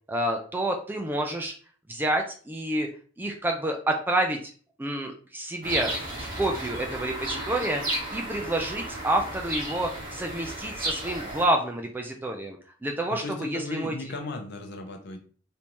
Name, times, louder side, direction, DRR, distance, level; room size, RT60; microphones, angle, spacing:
voice 1, 0.1-1.5 1.9-2.9 3.2-4.4 4.8-6.1 6.4-7.8 8.1-12.6 12.8-13.9, right 1 dB, 10° right, 3 dB, 0.3 m, -28 dB
sound 1, 5.6-11.5, right 1 dB, 40° right, 0.9 m, -33 dB
voice 2, 13.1-15.2, left 2 dB, 55° left, 4 dB, 0.7 m, -36 dB
3.4 x 2.7 x 3.0 m, 0.42 s
head